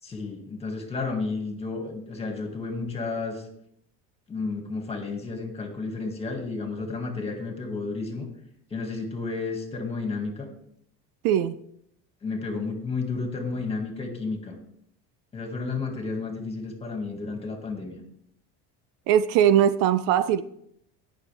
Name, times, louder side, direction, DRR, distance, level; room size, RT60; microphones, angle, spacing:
voice 1, 0.0-3.5 4.3-8.3 8.7-10.5 12.2-14.6 15.3-18.0, left 4 dB, 15° left, 2.0 m, -32 dB
voice 2, 11.2-11.6 19.1-20.4, right 10 dB, 70° right, 0.6 m, -20 dB
19.0 x 6.5 x 3.4 m
cardioid pair, 150°, 34 cm